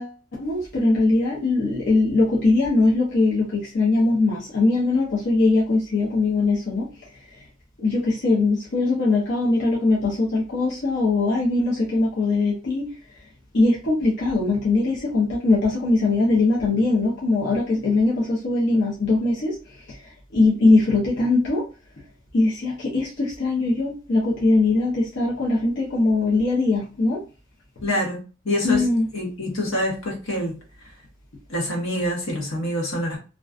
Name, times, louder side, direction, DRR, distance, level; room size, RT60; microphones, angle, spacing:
voice 1, 0.0-6.9 7.8-12.9 13.5-19.6 19.9-20.0 20.3-21.7 22.3-27.2 28.6-29.1, left 3 dB, 55° left, -5 dB, 0.6 m, -21 dB
voice 2, 27.8-28.2 28.4-28.8 29.1-30.6 31.5-33.2, left 1 dB, 75° left, 0 dB, 0.9 m, -25 dB
2.3 x 2.2 x 2.3 m, 0.33 s
head